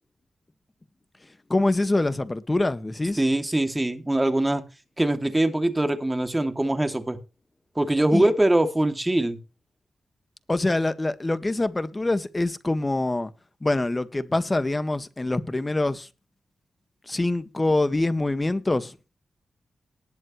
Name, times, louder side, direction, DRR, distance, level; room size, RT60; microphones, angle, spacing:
voice 1, 1.5-3.2 8.1-8.3 10.5-13.3 13.6-16.1 17.1-18.9, left 2 dB, 25° left, 1.7 m, -25 dB
voice 2, 3.2-4.6 5.0-7.2 7.8-9.4, right 1 dB, 20° right, 2.7 m, -23 dB
19.5 x 7.6 x 3.2 m
cardioid pair, 50°, 0 cm